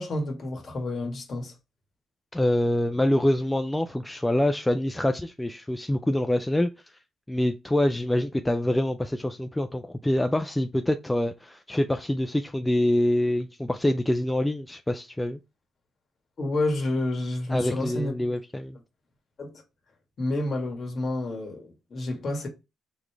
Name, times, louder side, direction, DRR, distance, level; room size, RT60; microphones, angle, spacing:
voice 1, 0.0-1.5 16.4-18.1 19.4-19.6 20.2-22.5, left 2 dB, 45° left, 1.6 m, -29 dB
voice 2, 2.3-6.7 7.3-15.4 17.5-18.8, left 1 dB, 10° left, 0.3 m, -25 dB
3.8 x 3.1 x 3.3 m
cardioid pair, 90°, 0 cm